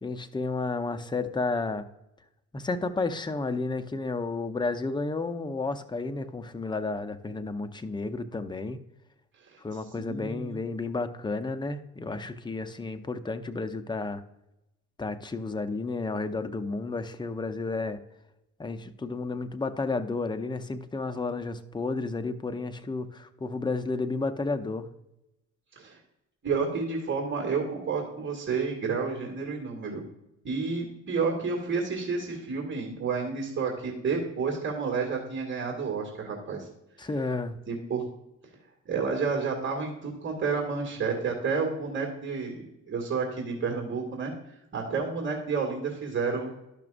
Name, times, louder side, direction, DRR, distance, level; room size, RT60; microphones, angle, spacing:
voice 1, 0.0-1.9 2.5-8.8 9.6-14.2 15.0-18.0 18.6-24.9 37.0-37.6, left 3 dB, 15° left, 9 dB, 0.6 m, -32 dB
voice 2, 10.0-10.6 25.8-26.0 26.4-30.0 30.4-36.7 37.0-37.1 37.7-38.0 38.9-44.3 44.7-46.5, right 5 dB, 40° right, 1 dB, 2.1 m, -30 dB
12.0 x 5.9 x 2.5 m, 0.89 s
cardioid pair, 90°, 30 cm